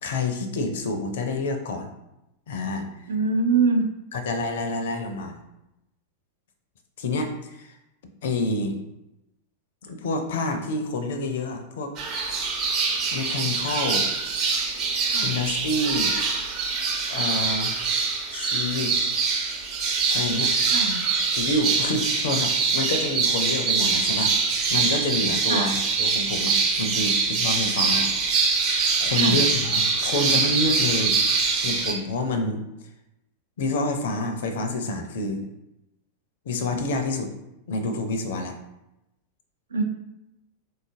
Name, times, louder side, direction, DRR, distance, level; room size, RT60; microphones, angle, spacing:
voice 1, 0.0-1.9 2.5-2.9 4.1-5.4 7.0-7.7 8.2-8.8 9.8-11.9 13.1-14.1 15.2-16.2 17.1-17.8 18.3-19.0 20.1-20.5 21.4-28.1 28.6-31.2 31.6-32.6 33.6-35.4 36.5-37.3 37.7-38.5, left 2 dB, 60° left, 6 dB, 0.4 m, -28 dB
voice 2, 3.1-3.9 15.1-15.4 20.7-21.0 25.5-25.8 29.2-29.4 39.7-39.8, right 4 dB, 70° right, 4 dB, 0.4 m, -23 dB
sound 1, 12.0-31.9, right 4 dB, 40° right, 0.7 m, -24 dB
3.7 x 2.4 x 2.5 m, 0.89 s
figure-of-eight pair, 90°, 0 cm